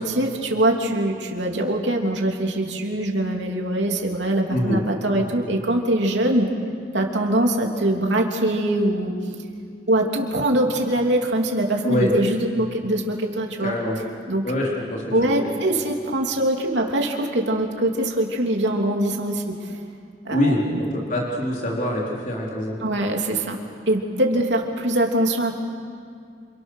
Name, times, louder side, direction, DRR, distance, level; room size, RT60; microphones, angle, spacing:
voice 1, 0.0-6.5 6.9-9.1 9.9-13.7 14.3-14.4 15.1-19.8 20.2-20.8 22.8-23.6 23.9-25.5, right 1 dB, 90° right, 1 dB, 3.2 m, -23 dB
voice 2, 4.5-4.8 11.8-12.1 13.6-14.0 14.4-15.5 20.3-22.8, left 1 dB, 45° left, -3 dB, 4.2 m, -24 dB
28.5 x 28.0 x 6.5 m, 2.3 s
head